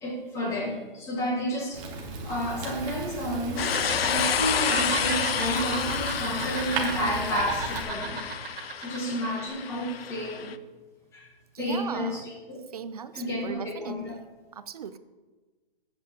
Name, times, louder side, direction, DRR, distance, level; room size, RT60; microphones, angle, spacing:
voice 1, 0.0-1.8 2.2-10.5 11.1-11.3 11.6-12.6 13.1-14.2, equal, 10° left, -1 dB, 1.4 m, -31 dB
Fire, 1.7-7.8, right 2 dB, 10° right, 0.7 m, -36 dB
sound 1, 3.6-10.6, left 8 dB, 85° left, 0.7 m, -30 dB
Laughter, 3.6-4.1 4.4-7.1 7.3-9.0 9.3-9.5, right 6 dB, 75° right, 1.8 m, -35 dB
voice 2, 11.5-12.2 12.7-14.2 14.5-15.0, right 7 dB, 40° right, 13 dB, 0.4 m, -38 dB
19.0 x 7.9 x 2.9 m, 1.3 s
hypercardioid pair, 165°, 29 cm